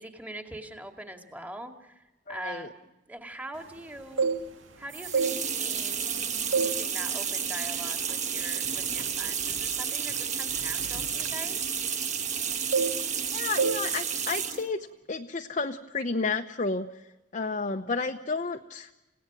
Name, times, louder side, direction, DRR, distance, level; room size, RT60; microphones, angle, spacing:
voice 1, 0.0-4.3 4.8-11.6, right 1 dB, 10° right, 4 dB, 2.2 m, -43 dB
voice 2, 2.3-2.7 13.3-16.9 17.3-18.9, left 4 dB, 40° left, 4 dB, 0.9 m, -31 dB
sound 1, 4.0-4.7 5.1-6.1 6.5-6.9 7.2-7.5 8.1-8.3 8.6-12.4 12.7-13.3 13.6-13.9 14.1-14.4, right 5 dB, 85° right, 2.1 m, -30 dB
sound 2, 4.9-14.7, right 7 dB, 40° right, 1.3 m, -31 dB
30.0 x 17.5 x 6.1 m, 1.0 s
head